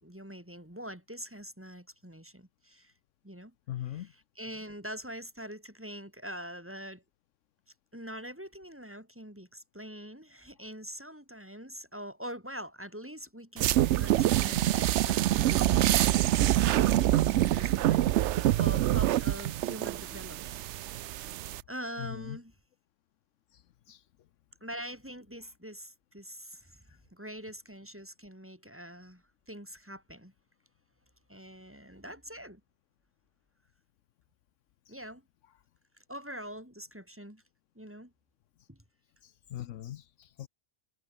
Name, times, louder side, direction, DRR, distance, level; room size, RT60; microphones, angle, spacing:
voice 1, 0.0-2.9 3.2-3.5 3.8-7.0 7.9-16.8 17.1-22.5 24.6-26.8 27.1-30.3 31.3-32.6 34.9-35.2 36.0-37.4 37.7-38.1 38.7-38.8, equal, 10° right, 3.3 m, -44 dB
voice 2, 3.7-4.1 22.0-22.4 23.5-23.6 23.9-24.0 39.2-40.5, left 12 dB, 75° left, 1.0 m, -40 dB
sound 1, 13.6-21.6, right 13 dB, 70° right, 0.8 m, -26 dB
omnidirectional pair, 1.3 m